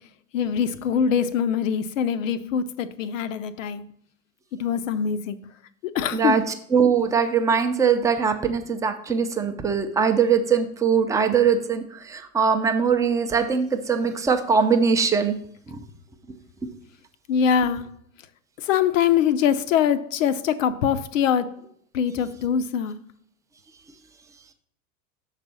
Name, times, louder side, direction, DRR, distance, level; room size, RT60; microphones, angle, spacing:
voice 1, 0.3-3.8 4.5-5.5 5.9-6.4 17.3-17.9 18.6-21.5 21.9-23.0, left 8 dB, 60° left, 0.6 m, -23 dB
voice 2, 6.7-15.4, right 6 dB, 10° right, 0.4 m, -21 dB
6.7 x 4.1 x 6.1 m
figure-of-eight pair, 85°, 44 cm